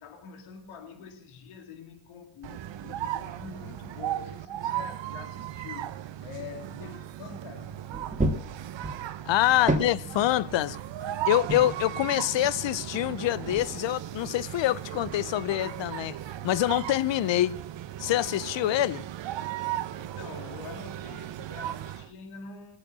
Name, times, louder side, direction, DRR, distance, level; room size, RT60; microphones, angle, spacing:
voice 1, 0.0-7.9 9.4-10.7 20.0-22.8, left 5 dB, 80° left, 2.5 m, -45 dB
sound 1, 2.4-22.1, right 12 dB, 60° right, 1.0 m, -36 dB
sound 2, 7.9-9.2 9.5-10.8 11.5-11.9 12.6-13.8 14.5-14.6 15.0-15.5, right 1 dB, 15° right, 2.1 m, -32 dB
voice 2, 9.3-10.8 11.3-16.2 16.4-17.6 18.0-19.0, left 14 dB, 65° left, 0.8 m, -25 dB
19.5 x 9.5 x 7.4 m
supercardioid pair, 70°, 49 cm